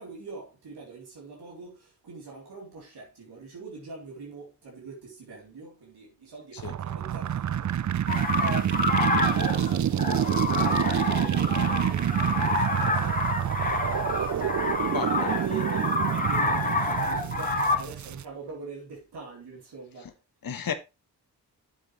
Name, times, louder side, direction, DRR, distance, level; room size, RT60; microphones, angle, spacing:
voice 1, 0.0-9.1 9.3-13.3 14.3-20.2, right 3 dB, 80° right, 3.5 m, -42 dB
sound 1, 6.6-18.2, right 10 dB, 50° right, 0.5 m, -27 dB
sound 2, 8.1-17.8, left 2 dB, 20° left, 2.5 m, -28 dB
voice 2, 14.9-15.4 20.4-20.7, left 7 dB, 60° left, 1.3 m, -32 dB
9.3 x 7.9 x 3.2 m
cardioid pair, 50°, 39 cm